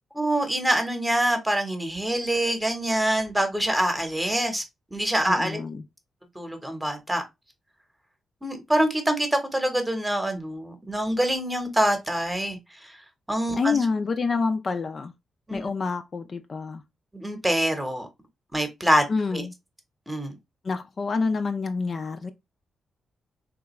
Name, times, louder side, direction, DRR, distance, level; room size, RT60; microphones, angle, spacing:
voice 1, 0.1-4.6 4.9-5.6 6.4-7.2 8.4-12.6 13.3-13.8 15.5-15.6 17.1-18.1 18.5-19.0 19.3-19.4 20.1-20.3, right 1 dB, 10° right, 0.9 m, -25 dB
voice 2, 5.3-5.8 13.5-15.1 15.5-16.8 19.1-19.5 20.6-22.3, left 4 dB, 45° left, 0.4 m, -27 dB
3.3 x 2.4 x 2.9 m
cardioid pair, 75°, 0 cm